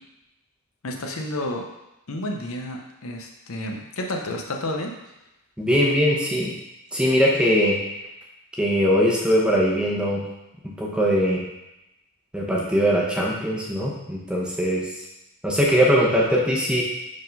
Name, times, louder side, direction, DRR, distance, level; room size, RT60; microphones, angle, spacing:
voice 1, 0.8-1.6 2.1-4.9, left 1 dB, 70° left, 2 dB, 0.8 m, -30 dB
voice 2, 5.6-6.5 6.9-7.8 8.6-10.2 10.8-11.4 12.3-14.8 15.4-16.8, equal, 5° right, -4 dB, 0.9 m, -21 dB
5.1 x 3.8 x 5.3 m, 0.94 s
head